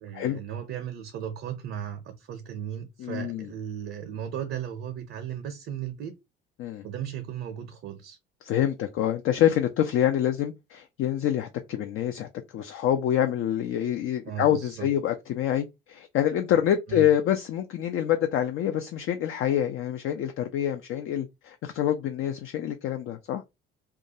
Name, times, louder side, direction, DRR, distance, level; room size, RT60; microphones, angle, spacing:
voice 1, 0.0-6.1 6.8-8.2 14.2-14.9 16.9-17.1, right 9 dB, 45° right, 0.6 m, -36 dB
voice 2, 3.0-3.5 6.6-6.9 8.4-23.4, left 10 dB, 45° left, 0.4 m, -26 dB
2.4 x 2.2 x 2.8 m
hypercardioid pair, 60°, 29 cm